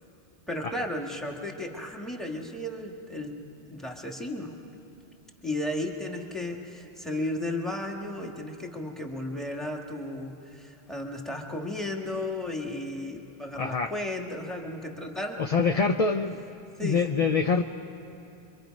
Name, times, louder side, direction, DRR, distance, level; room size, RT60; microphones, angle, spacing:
voice 1, 0.5-3.4 3.7-4.6 5.4-15.4 16.8-17.0, left 1 dB, ahead, 1 dB, 1.6 m, -34 dB
voice 2, 13.6-13.9 15.4-16.4 16.8-17.6, left 4 dB, 45° left, 6 dB, 0.6 m, -25 dB
26.0 x 23.5 x 5.2 m, 2.8 s
omnidirectional pair, 1.1 m